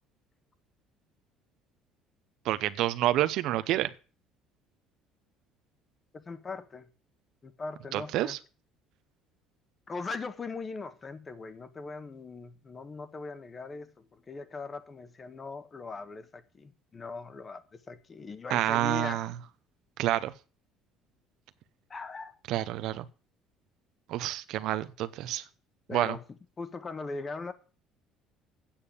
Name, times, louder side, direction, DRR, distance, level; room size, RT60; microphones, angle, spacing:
voice 1, 2.4-3.9 7.9-8.4 18.5-19.3 20.0-20.3 22.5-23.0 24.1-25.4 25.9-26.2, right 14 dB, 70° right, 0.8 m, -28 dB
voice 2, 6.1-6.9 7.4-8.4 9.9-19.2 21.9-22.4 25.9-26.2 26.6-27.5, left 4 dB, 25° left, 1.4 m, -40 dB
8.8 x 7.1 x 8.5 m
cardioid pair, 110°, 0 cm